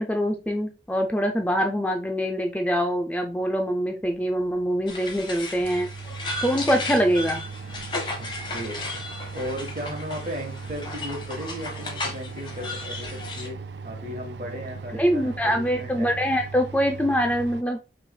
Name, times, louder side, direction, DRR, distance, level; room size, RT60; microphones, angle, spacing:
voice 1, 0.0-5.9 6.4-7.4 14.9-17.8, equal, 10° left, 4 dB, 0.3 m, -24 dB
sound 1, 4.4-4.5 5.1-5.2 5.5-17.6, right 4 dB, 80° right, 0.4 m, -38 dB
sound 2, 4.9-13.5, left 2 dB, 25° left, 0.9 m, -35 dB
voice 2, 8.2-8.8 9.3-13.6 13.8-16.2, equal, 45° right, 2 dB, 1.3 m, -36 dB
5.9 x 3.2 x 2.2 m, 0.31 s
head